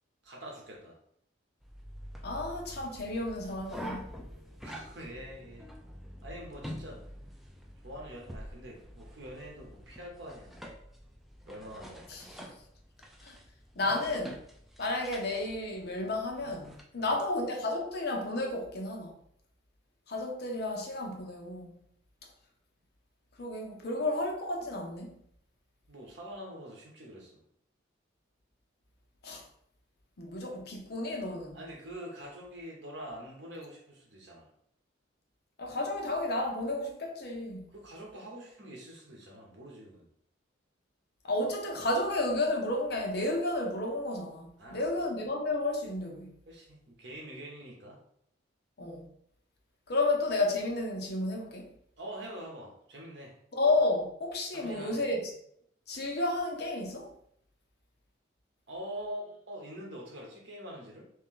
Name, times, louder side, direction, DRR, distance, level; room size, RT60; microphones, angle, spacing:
voice 1, 0.2-1.0 4.6-5.7 6.2-7.0 7.8-10.6 11.4-12.1 16.9-17.2 25.9-27.4 31.5-34.5 37.7-40.1 44.6-44.9 46.4-48.0 52.0-53.4 54.5-55.0 58.7-61.0, equal, 60° right, 1.1 m, -45 dB
sound 1, 1.6-16.8, equal, ahead, 0.3 m, -47 dB
voice 2, 2.2-4.0 12.1-12.2 13.2-13.4 13.8-14.4 14.8-19.1 20.1-21.8 23.4-25.2 29.2-29.4 30.2-31.6 35.6-37.7 41.2-46.3 48.8-49.1 49.9-51.7 53.6-55.3 55.9-57.1, left 2 dB, 55° left, 0.7 m, -32 dB
3.2 x 2.8 x 3.7 m
head